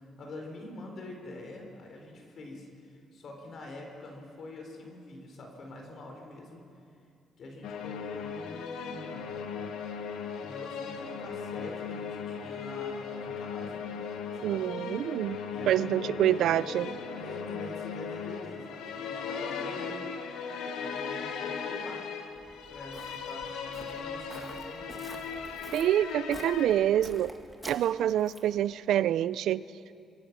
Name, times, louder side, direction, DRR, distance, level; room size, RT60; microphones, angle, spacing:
voice 1, 0.2-6.6 7.4-9.3 10.4-13.9 14.3-14.7 15.5-16.9 17.1-20.0 20.8-22.0 22.7-25.2, left 2 dB, 60° left, 2 dB, 4.4 m, -45 dB
sound 1, 7.6-26.8, left 6 dB, 90° left, 1.6 m, -38 dB
voice 2, 14.4-15.4 15.7-16.9 25.7-27.3 27.6-29.6, right 11 dB, 80° right, 18 dB, 0.5 m, -26 dB
Walk footsteps, 22.3-28.6, equal, ahead, 2.4 m, -49 dB
26.0 x 22.5 x 6.1 m, 2.5 s
cardioid pair, 90°, 0 cm